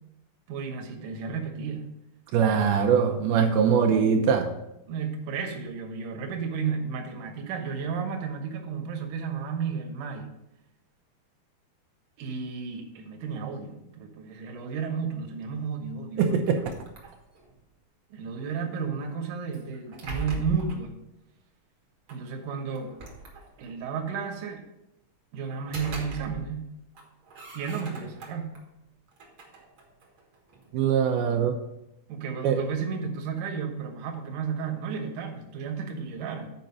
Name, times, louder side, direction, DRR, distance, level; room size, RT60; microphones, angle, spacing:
voice 1, 0.5-1.8 4.9-10.3 12.2-16.5 18.1-21.0 22.1-22.9 23.6-24.6 25.3-26.6 27.5-28.5 32.1-36.5, right 6 dB, 65° right, 3 dB, 2.4 m, -33 dB
voice 2, 2.3-4.5 16.2-16.6 30.7-31.6 32.4-32.6, right 7 dB, 85° right, 3 dB, 2.6 m, -22 dB
sound 1, 16.4-17.6 19.5-20.9 22.1-22.2 22.8-23.8 25.4-26.7 26.9-28.6 29.1-30.7, right 1 dB, 50° right, 1.6 m, -40 dB
8.8 x 5.1 x 5.4 m, 0.85 s
omnidirectional pair, 4.4 m